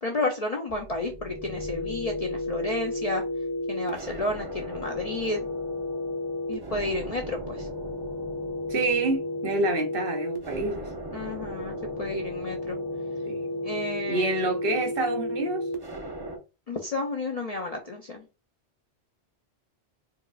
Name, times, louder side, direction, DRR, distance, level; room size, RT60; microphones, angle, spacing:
voice 1, 0.0-3.2 3.7-5.5 6.5-7.7 11.1-12.8 13.6-14.5 16.7-18.2, left 2 dB, 50° left, 0.4 m, -31 dB
sound 1, 0.7-16.4, left 1 dB, 25° right, 0.6 m, -33 dB
voice 2, 8.7-10.9 13.3-13.4 14.1-15.6, right 2 dB, 60° right, 0.9 m, -27 dB
4.5 x 2.4 x 2.3 m
omnidirectional pair, 1.2 m